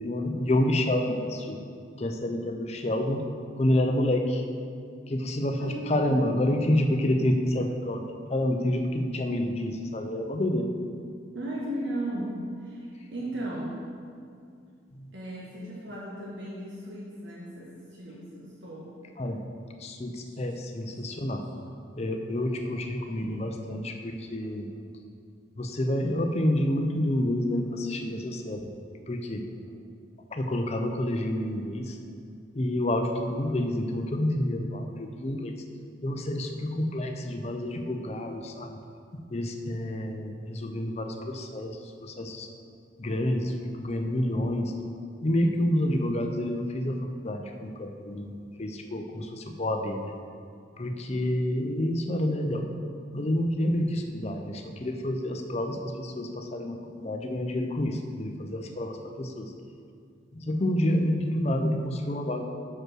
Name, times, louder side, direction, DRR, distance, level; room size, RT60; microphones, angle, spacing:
voice 1, 0.0-1.6 2.0-3.2 3.6-4.4 5.1-8.0 8.3-10.7 15.0-15.1 19.2-19.4 19.8-21.4 22.0-24.7 25.6-28.7 29.1-29.5 30.3-32.0 32.5-35.6 36.0-38.8 39.3-42.5 43.0-44.7 45.2-50.2 50.8-52.7 53.1-59.5 60.3-62.4, left 1 dB, 35° left, 5 dB, 0.5 m, -28 dB
voice 2, 5.6-6.3 11.3-12.3 12.6-13.8 15.1-18.9 20.1-20.4 20.7-20.8 21.1-21.2 22.3-23.2 23.5-23.8 24.4-24.5 31.8-31.9 43.4-43.5, right 1 dB, 70° right, -5 dB, 1.1 m, -37 dB
6.1 x 5.3 x 6.2 m, 2.3 s
head